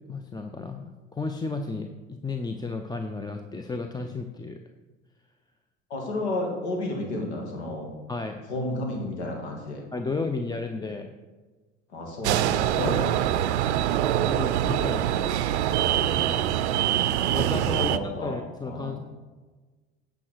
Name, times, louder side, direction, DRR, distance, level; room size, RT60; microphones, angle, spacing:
voice 1, 0.1-4.6 8.1-8.4 9.9-11.1 14.1-15.4 15.7-16.2 17.3-17.9 18.2-19.0, left 3 dB, 10° left, 6 dB, 0.6 m, -33 dB
voice 2, 5.9-7.9 8.5-9.8 11.9-13.1 16.0-16.5 17.8-18.4 18.6-18.9, left 1 dB, 80° left, 1 dB, 2.2 m, -32 dB
sound 1, 12.2-18.0, right 11 dB, 85° right, 0.5 m, -24 dB
9.8 x 4.9 x 6.3 m, 1.3 s
hypercardioid pair, 65°, 33 cm